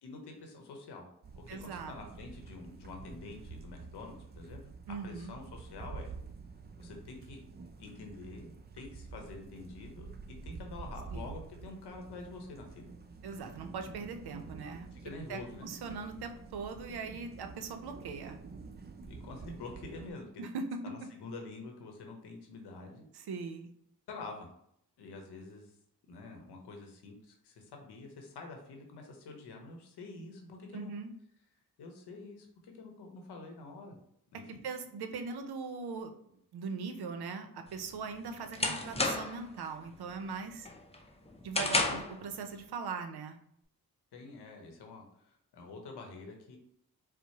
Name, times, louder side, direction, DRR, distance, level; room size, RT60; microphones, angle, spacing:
voice 1, 0.0-1.1 1.3-4.6 5.0-6.1 6.8-7.4 7.8-10.1 10.4-12.9 14.9-15.7 19.1-20.4 20.8-23.1 24.1-24.5 25.0-25.7 26.1-30.9 31.8-34.0 34.3-34.6 41.9-42.0 44.1-46.6, left 3 dB, 85° left, 3 dB, 0.8 m, -47 dB
sound 1, 1.2-20.1, right 4 dB, 25° right, 0.4 m, -48 dB
voice 2, 1.5-1.9 4.9-5.3 11.1-11.3 13.2-14.9 15.3-18.4 20.4-20.6 23.1-23.7 30.7-31.1 34.5-36.1 36.5-40.7 41.4-43.4, right 5 dB, 75° right, 6 dB, 0.6 m, -40 dB
sound 2, 37.7-39.5 39.9-40.3 40.7-42.2, left 2 dB, 15° left, 0.7 m, -32 dB
4.4 x 2.0 x 2.8 m, 0.72 s
supercardioid pair, 45°, 39 cm